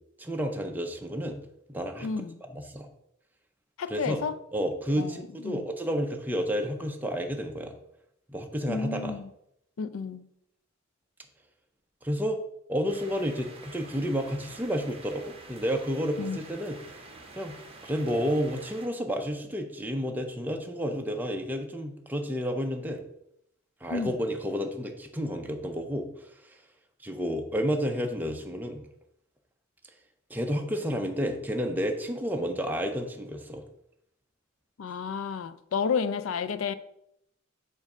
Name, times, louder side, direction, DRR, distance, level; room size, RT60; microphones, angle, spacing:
voice 1, 0.2-1.4 1.7-2.1 2.5-2.9 3.9-4.2 4.5-7.7 8.3-9.2 12.0-12.4 12.7-16.8 17.3-17.5 17.8-23.0 23.8-26.6 27.0-28.8 30.3-33.6, equal, 10° right, 0.5 m, -31 dB
voice 2, 2.0-2.4 3.8-4.3 5.0-5.7 8.7-9.3 9.8-10.3 16.2-16.4 23.9-24.1 34.8-36.7, left 5 dB, 90° left, 0.4 m, -31 dB
sound 1, 12.9-18.9, right 3 dB, 30° right, 0.8 m, -48 dB
7.2 x 2.6 x 5.3 m
head